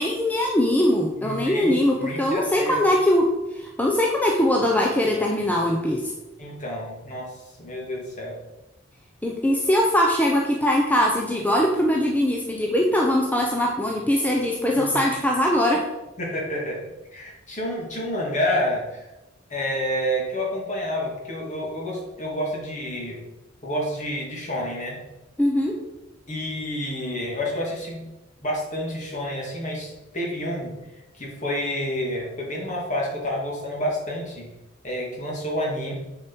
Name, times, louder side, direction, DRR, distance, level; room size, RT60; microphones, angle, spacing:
voice 1, 0.0-6.1 9.2-15.8 25.4-25.8, left 1 dB, 10° left, -1 dB, 0.7 m, -21 dB
voice 2, 1.1-2.8 6.4-7.3 7.6-8.4 14.7-15.0 16.2-16.8 17.1-19.0 19.5-23.2 23.6-25.0 26.3-28.0 28.4-30.7 31.1-34.5 34.8-35.9, equal, 40° left, -2 dB, 2.4 m, -29 dB
9.3 x 4.9 x 4.6 m, 1.0 s
head